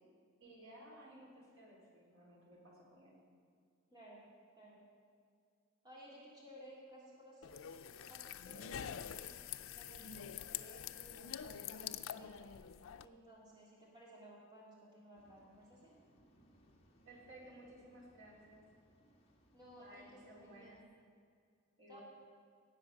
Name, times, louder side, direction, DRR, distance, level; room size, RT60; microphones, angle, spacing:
voice 1, 0.4-3.2 17.0-18.6 19.8-20.8 21.8-22.0, right 1 dB, 75° right, -3 dB, 3.9 m, -57 dB
voice 2, 3.9-4.3 4.5-4.8 5.8-12.5 13.0-15.9 19.5-20.8 21.9-22.0, right 1 dB, 20° right, -6 dB, 2.9 m, -58 dB
sound 1, 7.4-13.1, left 9 dB, 80° left, 0.5 m, -46 dB
Waves surf, 15.1-20.8, equal, 30° left, 1.6 m, -69 dB
18.0 x 8.1 x 6.3 m, 2.2 s
head